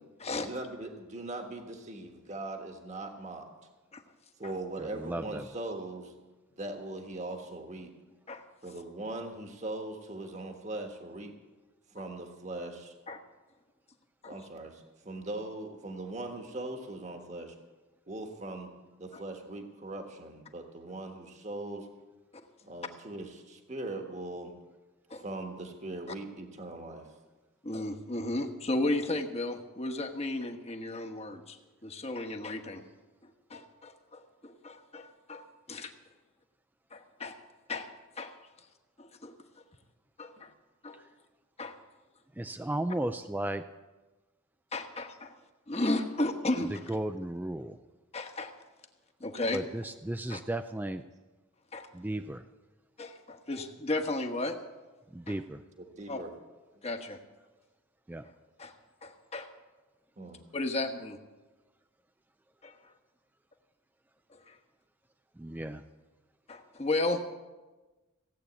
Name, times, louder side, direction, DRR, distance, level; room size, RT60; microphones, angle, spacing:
voice 1, 0.4-3.5 4.4-6.1 6.6-7.9 8.6-11.4 11.9-12.9 14.3-17.5 18.1-18.7 19.0-21.9 22.6-24.5 25.2-27.1 40.4-40.5 55.8-56.3 56.7-56.8 60.2-60.4, right 2 dB, 35° right, 4 dB, 1.5 m, -40 dB
voice 2, 4.9-5.4 42.4-43.6 46.9-47.8 49.5-51.0 51.9-52.4 55.1-55.6 58.1-58.2 65.4-65.8, right 1 dB, 10° right, 9 dB, 0.4 m, -34 dB
voice 3, 27.6-32.8 33.2-35.9 36.9-37.4 37.7-38.3 39.0-39.3 40.2-40.5 40.8-41.0 41.6-41.8 44.7-45.3 45.7-46.7 48.1-48.5 49.2-49.6 50.3-50.4 51.7-51.9 53.0-54.6 55.3-55.4 56.1-56.2 56.8-57.2 58.6-58.7 59.0-59.5 60.5-61.2 62.6-62.7 64.3-64.6 66.5-67.2, left 2 dB, 30° left, 5 dB, 1.2 m, -34 dB
17.0 x 8.5 x 8.2 m, 1.2 s
head